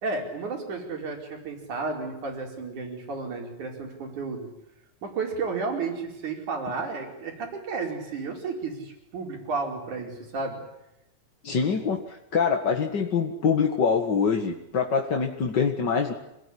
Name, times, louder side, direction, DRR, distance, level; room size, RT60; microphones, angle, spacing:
voice 1, 0.0-4.5 5.0-10.6 11.7-11.8, right 4 dB, 60° right, 2 dB, 6.2 m, -32 dB
voice 2, 11.4-16.1, left 6 dB, 40° left, 2 dB, 1.8 m, -25 dB
27.0 x 19.0 x 10.0 m, 0.90 s
omnidirectional pair, 3.9 m